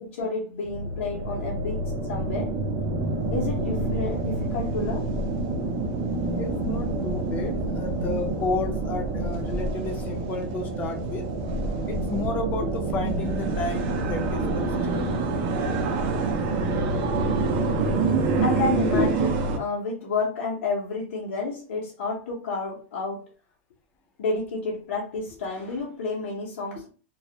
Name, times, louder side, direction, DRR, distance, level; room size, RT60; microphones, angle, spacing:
voice 1, 0.0-2.6 3.3-5.1 18.4-19.3 19.6-23.2 24.2-26.9, left 3 dB, 80° left, -4 dB, 0.7 m, -30 dB
sound 1, 0.6-19.6, right 3 dB, 40° right, 0.5 m, -27 dB
voice 2, 6.4-11.3 11.9-15.5 16.6-17.2 17.5-17.6 18.5-18.6 18.9-19.0, left 3 dB, 25° left, 3 dB, 0.5 m, -32 dB
2.3 x 2.0 x 2.7 m, 0.39 s
supercardioid pair, 150°, 7 cm